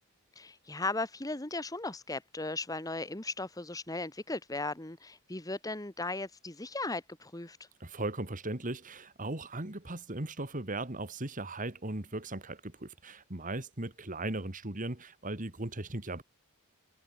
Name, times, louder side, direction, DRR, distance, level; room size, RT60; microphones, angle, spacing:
voice 1, 0.3-7.6, left 2 dB, 15° left, 1.4 m, -37 dB
voice 2, 7.8-16.2, right 2 dB, 35° right, 2.2 m, -38 dB
head